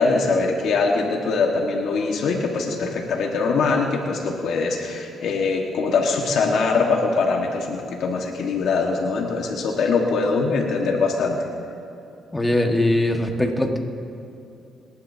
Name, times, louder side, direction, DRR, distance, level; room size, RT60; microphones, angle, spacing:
voice 1, 0.0-11.4, left 4 dB, 75° left, 1 dB, 1.5 m, -22 dB
voice 2, 12.3-13.8, left 1 dB, 10° left, 3 dB, 1.6 m, -21 dB
29.5 x 11.5 x 2.8 m, 2.7 s
cardioid pair, 90°, 0 cm